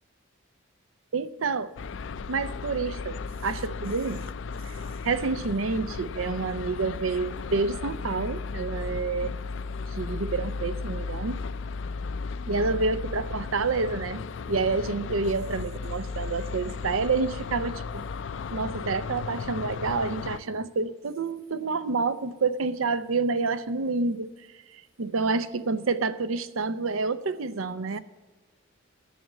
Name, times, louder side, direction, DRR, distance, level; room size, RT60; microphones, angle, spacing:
voice 1, 1.1-1.7 2.3-4.2 4.6-4.8 5.0-9.4 9.9-11.4 12.5-14.2 14.5-18.0 18.5-24.3 24.7-28.0, right 4 dB, 90° right, 14 dB, 0.6 m, -28 dB
sound 1, 1.8-20.4, left 4 dB, 65° left, 0.4 m, -35 dB
10.5 x 7.4 x 7.4 m, 1.3 s
head